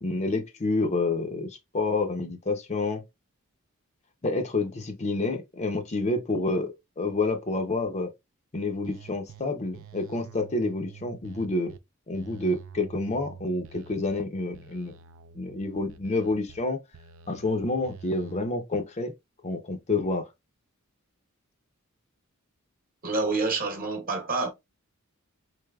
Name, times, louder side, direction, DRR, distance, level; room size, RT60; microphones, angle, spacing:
voice 1, 0.0-3.0 4.2-8.1 8.5-11.7 12.1-14.9 15.3-16.8 17.3-19.1 19.4-20.3, left 2 dB, 30° left, 0.6 m, -28 dB
sound 1, 8.8-9.4 9.7-11.8 12.1-14.2 14.5-16.6 16.9-18.4, right 7 dB, 65° right, 0.5 m, -47 dB
voice 2, 23.0-24.5, right 3 dB, 40° right, 1.1 m, -27 dB
4.2 x 3.2 x 2.2 m
head